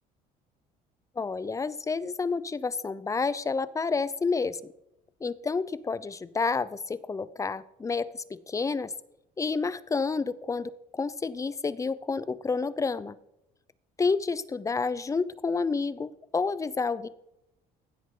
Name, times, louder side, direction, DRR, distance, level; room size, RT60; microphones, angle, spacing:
voice 1, 1.2-4.6 5.2-8.9 9.4-13.2 14.0-17.1, left 4 dB, 20° left, 17 dB, 0.6 m, -29 dB
15.5 x 8.2 x 3.8 m, 0.85 s
cardioid pair, 110°, 16 cm